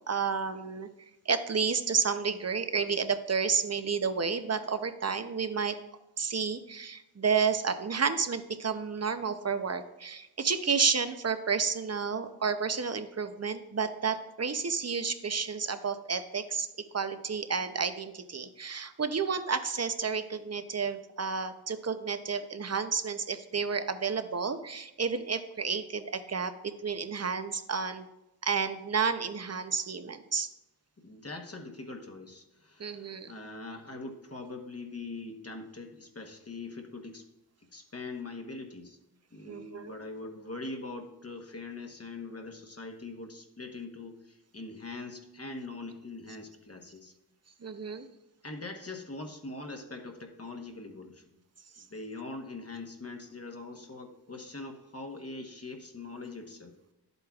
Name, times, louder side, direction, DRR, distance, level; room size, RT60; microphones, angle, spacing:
voice 1, 0.1-0.9 1.3-5.8 6.2-16.7 16.9-28.1 28.4-30.5 32.8-33.3 39.5-39.9 47.6-48.1, right 5 dB, 40° right, 10 dB, 0.7 m, -31 dB
voice 2, 31.0-37.2 37.7-39.0 39.3-47.1 48.4-51.2 51.8-56.7, left 3 dB, 35° left, 3 dB, 1.1 m, -42 dB
11.0 x 8.0 x 2.4 m, 0.93 s
wide cardioid pair, 65°, 41 cm